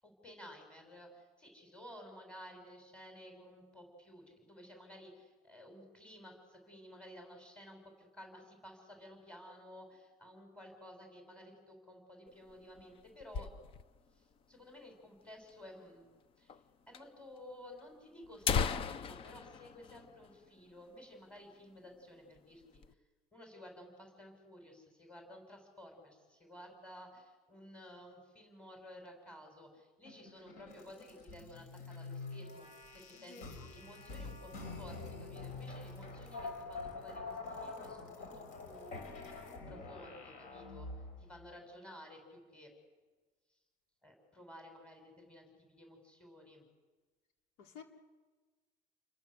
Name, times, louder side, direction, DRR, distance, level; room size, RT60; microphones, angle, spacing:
voice 1, 0.0-13.5 14.1-16.1 16.4-22.6 23.3-32.7 32.9-39.0 39.7-40.9 41.2-42.7 44.0-46.7, left 1 dB, 5° left, 2 dB, 7.0 m, -54 dB
sound 1, 12.3-14.1 14.4-14.5 14.7-14.8 15.5-15.6 16.5-16.6 16.9-17.0 17.8-17.9 18.2-20.8 21.1-21.3 21.7-21.9 22.4-22.9, left 6 dB, 35° left, 0.8 m, -37 dB
sound 2, 30.0-41.3, left 3 dB, 50° left, 6.2 m, -46 dB
voice 2, 33.2-33.7 47.6-47.8, left 6 dB, 75° left, 3 dB, 4.3 m, -53 dB
29.5 x 22.0 x 8.0 m, 1.3 s
cardioid pair, 170°, 17 cm